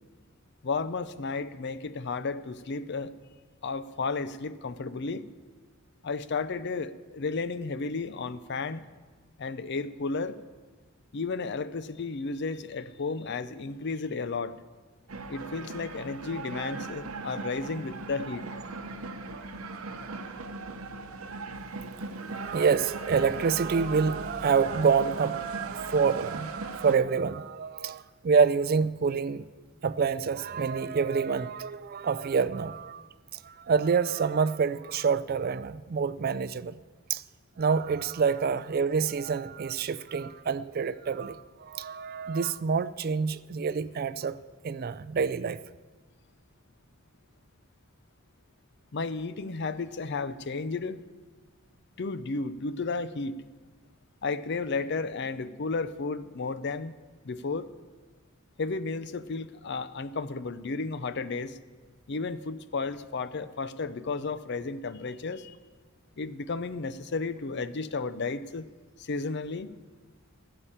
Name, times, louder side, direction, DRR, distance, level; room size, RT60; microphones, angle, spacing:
voice 1, 0.6-3.2 3.6-5.3 6.0-8.9 9.4-10.4 11.1-14.6 15.3-18.4 48.9-51.0 52.0-53.4 54.2-56.9 57.2-57.7 58.6-61.6 62.1-65.6 66.2-68.7 69.0-69.8, left 4 dB, 55° left, 0.5 m, -33 dB
sound 1, 15.1-27.0, right 3 dB, 80° right, 0.8 m, -39 dB
voice 2, 22.3-29.4 29.8-36.7 37.1-37.2 37.6-44.4 44.6-45.6, right 5 dB, 45° right, 0.4 m, -27 dB
14.5 x 6.9 x 8.7 m
head